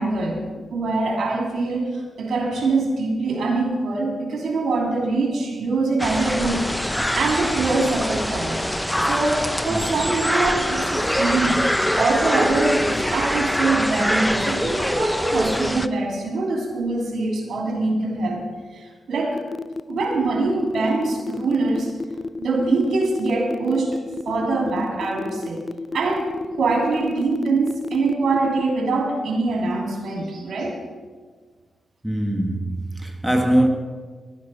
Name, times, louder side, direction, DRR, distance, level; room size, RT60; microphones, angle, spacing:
voice 1, 0.0-6.7 7.1-8.6 9.0-11.6 11.9-18.5 18.7-19.4 19.9-21.9 22.4-24.0 24.2-25.6 25.9-30.8, right 3 dB, 70° right, 2.8 m, -23 dB
sound 1, 6.0-15.9, equal, 5° left, 0.7 m, -23 dB
voice 2, 9.7-10.1 32.0-33.7, right 1 dB, 10° right, 1.5 m, -22 dB
sound 2, 19.4-28.7, left 3 dB, 45° left, 0.5 m, -31 dB
12.0 x 9.5 x 5.7 m
supercardioid pair, 45°, 0 cm